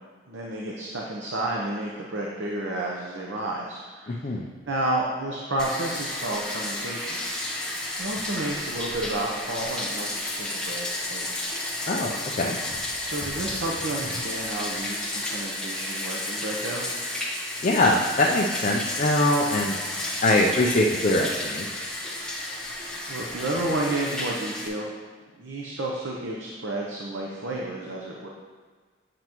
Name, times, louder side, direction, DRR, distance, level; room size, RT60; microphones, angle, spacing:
voice 1, 0.3-4.1 4.7-7.2 8.0-11.4 13.0-16.9 23.1-24.9 25.3-28.3, right 1 dB, 65° right, -2 dB, 0.8 m, -31 dB
voice 2, 4.1-4.4 11.9-12.6 17.6-19.8 20.2-21.7, left 1 dB, 40° left, -2 dB, 0.5 m, -23 dB
Bathtub (filling or washing), 5.6-24.7, left 1 dB, 5° left, 0.8 m, -32 dB
7.8 x 7.6 x 3.0 m, 1.4 s
head